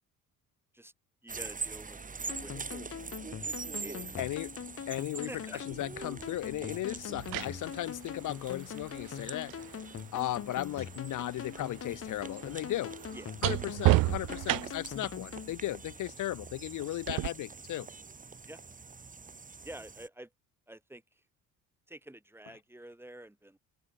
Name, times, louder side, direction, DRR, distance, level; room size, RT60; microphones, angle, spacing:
voice 1, 1.2-2.0 2.4-2.5 3.7-4.2 5.3-5.6 13.1-13.4 17.1-17.2 18.5-18.6 19.6-20.3 20.7-21.0 21.9-23.6, right 1 dB, 5° right, 5.6 m, -48 dB
sound 1, 1.3-20.1, right 4 dB, 25° right, 2.2 m, -45 dB
sound 2, 2.3-15.5, left 8 dB, 40° left, 2.7 m, -43 dB
voice 2, 4.2-4.5 4.9-9.8 10.1-12.9 13.4-17.9, left 14 dB, 65° left, 1.4 m, -36 dB
sound 3, 5.7-5.9 7.0-11.0 11.3-15.0 17.1-17.3, right 21 dB, 70° right, 0.6 m, -33 dB
open air
supercardioid pair, 85°, 34 cm